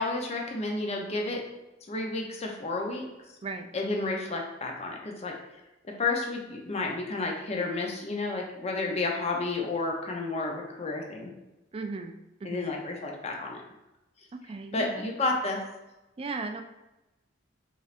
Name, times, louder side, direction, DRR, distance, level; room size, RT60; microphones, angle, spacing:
voice 1, 0.0-1.4 1.9-3.0 3.7-5.3 6.0-11.3 12.4-13.6 14.7-15.6, left 3 dB, 35° left, 1 dB, 0.6 m, -31 dB
voice 2, 11.7-12.1 12.4-12.7 14.4-15.1 16.2-16.6, right 3 dB, 30° right, 6 dB, 0.3 m, -36 dB
5.3 x 3.2 x 2.5 m, 1.0 s
head